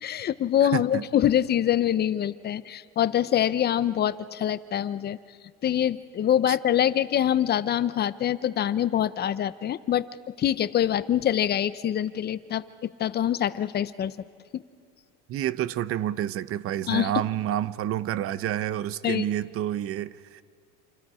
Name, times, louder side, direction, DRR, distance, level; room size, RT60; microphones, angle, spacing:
voice 1, 0.0-5.2 5.6-10.1 10.4-14.1 14.5-14.6 16.9-17.1 19.0-19.2, left 10 dB, 30° left, 15 dB, 0.6 m, -25 dB
voice 2, 0.7-1.0 6.5-6.6 15.3-20.4, right 11 dB, 40° right, 17 dB, 0.7 m, -29 dB
28.0 x 27.5 x 4.9 m, 2.1 s
cardioid pair, 140°, 36 cm